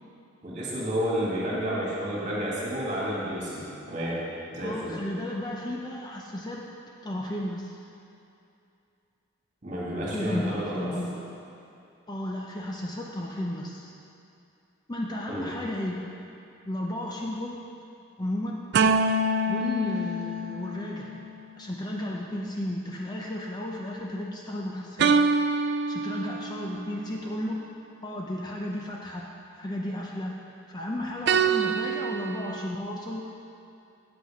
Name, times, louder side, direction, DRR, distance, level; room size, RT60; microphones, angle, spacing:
voice 1, 0.4-4.2 4.5-5.0 9.6-10.9 15.3-15.4, equal, 40° right, -6 dB, 2.3 m, -30 dB
voice 2, 4.6-6.6 7.0-7.8 10.1-11.3 12.1-13.9 14.9-16.3 16.7-17.6 18.2-18.6 19.5-21.3 21.6-25.3 25.9-27.6 28.0-29.3 29.6-30.4 30.7-33.2, left 1 dB, 20° left, -2 dB, 0.6 m, -33 dB
sound 1, 18.7-21.3 25.0-26.8 31.3-32.7, right 3 dB, 55° right, 0.3 m, -25 dB
8.2 x 7.9 x 5.0 m, 2.6 s
head